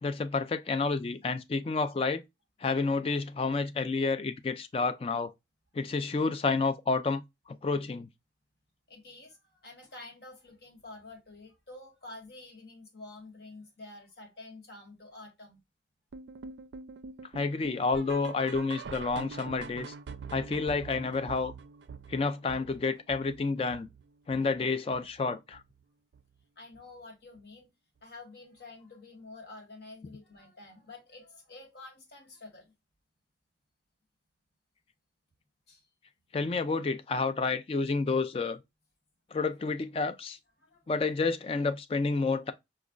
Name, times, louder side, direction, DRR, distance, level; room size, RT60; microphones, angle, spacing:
voice 1, 0.0-2.2 2.6-5.3 5.7-7.2 7.5-8.1 17.3-19.9 20.3-21.5 22.1-23.9 24.3-25.6 36.3-38.6 39.3-40.4 40.9-42.5, left 4 dB, 30° left, 0.3 m, -30 dB
voice 2, 8.9-15.6 26.6-27.7 28.0-32.7 35.7-35.9 40.6-40.8, left 2 dB, 65° left, 1.3 m, -49 dB
sound 1, 16.1-25.2 25.5-25.8 26.1-26.2 26.7-26.8 27.4-27.5, right 5 dB, 80° right, 0.4 m, -45 dB
4.9 x 2.2 x 2.3 m
head